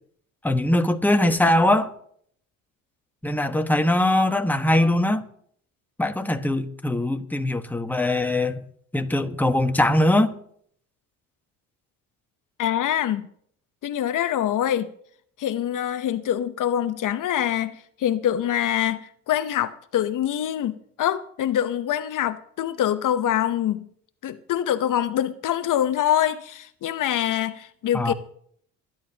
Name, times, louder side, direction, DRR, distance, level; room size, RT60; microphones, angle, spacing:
voice 1, 0.4-1.9 3.2-5.2 6.0-8.6 8.9-10.3 27.9-28.1, left 1 dB, 5° left, 1.4 m, -21 dB
voice 2, 12.6-13.3 13.8-14.9 15.4-23.9 24.2-28.1, left 11 dB, 60° left, 0.9 m, -25 dB
23.0 x 10.5 x 2.9 m
supercardioid pair, 70°, 35 cm